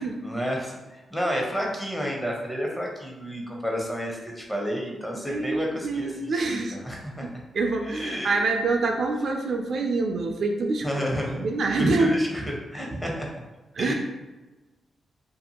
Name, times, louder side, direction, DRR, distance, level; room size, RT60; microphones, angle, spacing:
voice 1, 0.2-7.3 7.8-8.3 10.8-11.5 11.7-13.3 13.8-13.9, equal, 5° left, -1 dB, 0.7 m, -30 dB
voice 2, 5.2-6.8 7.5-10.9 11.4-12.2 13.7-13.9, right 3 dB, 65° right, 3 dB, 0.3 m, -26 dB
2.6 x 2.4 x 2.8 m, 1.1 s
cardioid pair, 75°, 0 cm